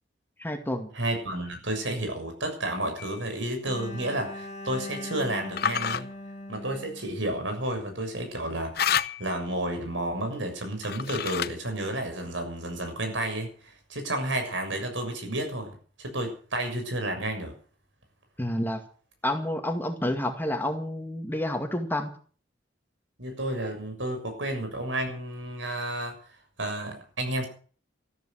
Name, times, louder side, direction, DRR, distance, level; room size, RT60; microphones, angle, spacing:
voice 1, 0.4-0.9 18.4-18.8 19.2-22.1, left 1 dB, 10° left, 5 dB, 2.2 m, -29 dB
voice 2, 0.9-6.1 6.5-15.7 16.0-17.5 23.2-26.2 26.6-27.4, right 1 dB, 90° right, 5 dB, 6.8 m, -31 dB
sound 1, 3.0-3.3 5.6-6.0 8.7-9.4 10.8-11.7, left 8 dB, 55° left, 0.8 m, -29 dB
Bowed string instrument, 3.6-7.7, left 1 dB, 35° left, 2.1 m, -40 dB
14.0 x 13.5 x 6.6 m, 0.42 s
head